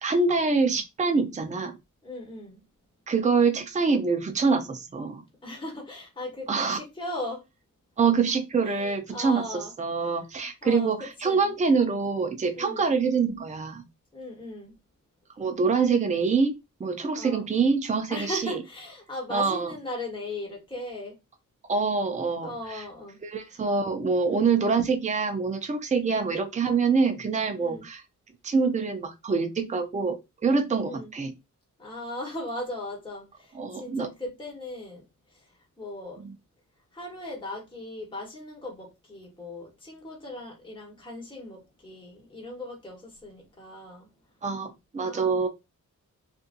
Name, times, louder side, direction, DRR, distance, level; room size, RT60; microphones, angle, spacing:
voice 1, 0.0-1.8 3.1-5.2 6.5-6.8 8.0-13.8 15.4-16.5 16.8-18.6 19.3-19.7 21.7-22.8 23.2-28.0 28.4-31.3 33.5-34.1 36.2-36.3 44.4-45.5, right 4 dB, 20° right, 0.5 m, -25 dB
voice 2, 2.0-2.6 5.4-7.4 8.7-9.7 10.0-10.1 10.6-11.5 12.5-12.9 14.1-14.7 17.2-17.5 18.1-21.2 22.4-23.2 24.2-24.6 26.0-26.3 27.6-27.9 30.9-31.1 31.8-35.0 35.3-35.5 35.8-36.2 36.9-44.1 45.0-45.4, left 1 dB, 15° left, 1.2 m, -38 dB
2.6 x 2.5 x 2.5 m
cardioid pair, 85°, 32 cm